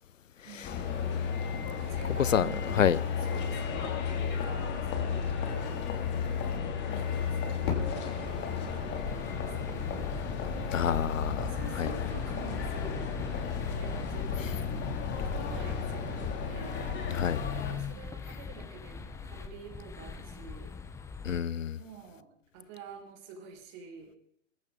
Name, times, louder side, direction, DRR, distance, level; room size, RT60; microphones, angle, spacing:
voice 1, 0.4-1.3 1.8-3.0 3.3-5.9 6.8-9.9 11.4-13.0 13.3-14.8 15.2-16.8 17.7-20.7 21.8-24.1, right 6 dB, 40° right, 5.3 m, -48 dB
sound 1, 0.6-17.7, left 6 dB, 30° left, 2.8 m, -33 dB
Fireworks, 7.6-10.5, left 4 dB, 50° left, 7.1 m, -40 dB
sound 2, 9.1-21.4, left 5 dB, 5° left, 0.7 m, -41 dB
voice 2, 10.7-11.4 11.8-11.9 17.1-17.4 21.2-21.8, left 8 dB, 80° left, 0.8 m, -27 dB
22.5 x 15.0 x 3.9 m
hypercardioid pair, 120°, 38 cm